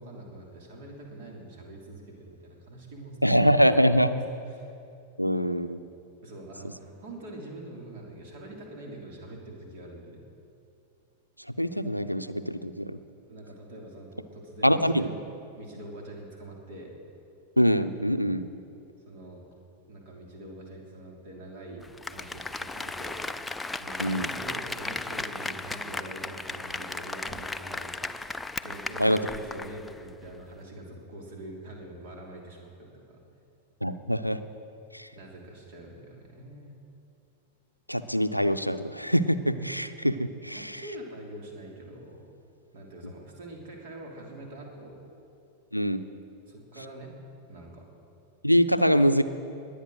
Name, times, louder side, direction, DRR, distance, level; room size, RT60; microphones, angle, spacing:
voice 1, 0.0-3.8 4.1-4.2 4.5-4.7 6.2-10.2 13.3-15.2 15.6-16.9 19.1-19.4 19.9-21.8 22.1-23.3 23.8-28.1 28.6-33.2 35.1-36.8 40.5-42.3 42.7-45.0 46.5-47.1 47.5-47.9, right 1 dB, 50° right, 0 dB, 3.0 m, -44 dB
voice 2, 3.2-4.1 5.2-5.8 11.6-13.0 14.6-15.1 17.6-18.5 24.0-24.3 29.0-29.2 33.8-34.4 34.9-35.1 37.9-40.8 45.7-46.0 48.4-49.2, equal, 90° left, 10 dB, 0.5 m, -24 dB
Applause, 21.8-30.0 30.3-30.4, left 2 dB, 10° left, 0.4 m, -36 dB
20.5 x 8.6 x 6.4 m, 2.6 s
figure-of-eight pair, 90°, 0 cm